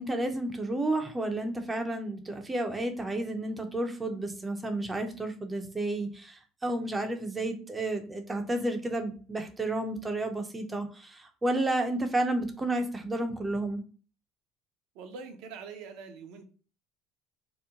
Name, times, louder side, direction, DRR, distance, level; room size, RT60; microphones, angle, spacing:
voice 1, 0.0-13.8, right 1 dB, 20° right, 5 dB, 0.6 m, -31 dB
voice 2, 14.9-16.4, right 5 dB, 70° right, 5 dB, 0.6 m, -43 dB
2.9 x 2.1 x 3.5 m, 0.38 s
supercardioid pair, 80°, 0 cm